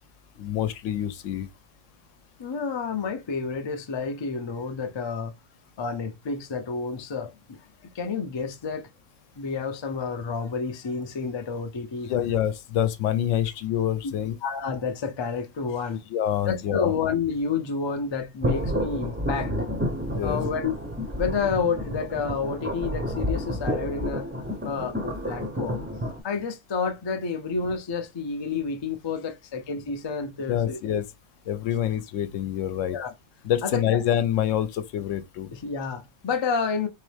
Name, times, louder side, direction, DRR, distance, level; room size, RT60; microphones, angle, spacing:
voice 1, 0.4-1.5 12.1-14.4 16.1-16.9 20.1-20.4 30.5-31.0 31.5-33.0 33.4-35.5, left 10 dB, 80° left, 0.9 m, -26 dB
voice 2, 2.4-5.4 5.8-8.9 9.4-12.1 14.0-14.1 14.4-16.0 16.4-19.5 20.2-20.8 21.2-24.3 24.6-25.9 26.2-30.8 32.9-33.1 33.6-34.0 35.5-36.9, left 5 dB, 45° left, 0.3 m, -30 dB
sound 1, 18.4-26.2, equal, 10° right, 0.5 m, -30 dB
3.8 x 3.1 x 3.3 m
omnidirectional pair, 1.3 m